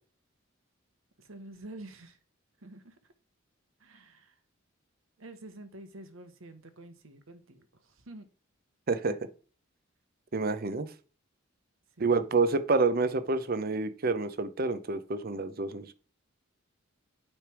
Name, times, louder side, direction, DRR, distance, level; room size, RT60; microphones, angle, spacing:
voice 1, 1.2-2.2 2.6-2.9 3.8-4.3 5.2-8.3 12.0-12.2, right 1 dB, 85° right, 1.2 m, -48 dB
voice 2, 10.3-10.9 12.0-15.9, right 3 dB, 45° right, 0.7 m, -28 dB
9.0 x 3.4 x 6.1 m
head